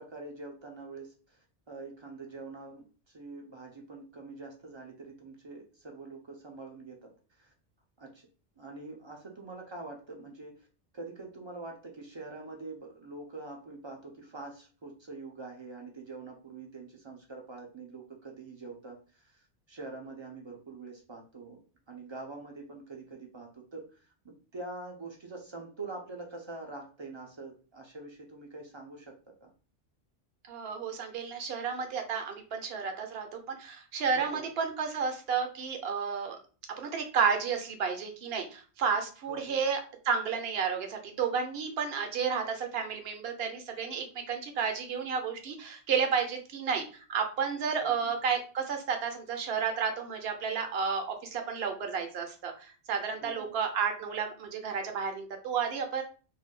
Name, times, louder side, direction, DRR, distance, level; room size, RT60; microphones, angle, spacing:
voice 1, 0.0-7.1 7.4-7.5 8.0-8.3 8.6-10.7 10.9-21.6 21.9-29.1 29.4-29.5 34.1-34.5 39.3-39.6 47.8-48.1 53.2-53.5, right 3 dB, 40° right, 1 dB, 0.4 m, -45 dB
voice 2, 30.5-36.4 36.8-56.0, right 6 dB, 70° right, 5 dB, 0.9 m, -32 dB
2.6 x 2.1 x 3.6 m, 0.37 s
omnidirectional pair, 1.1 m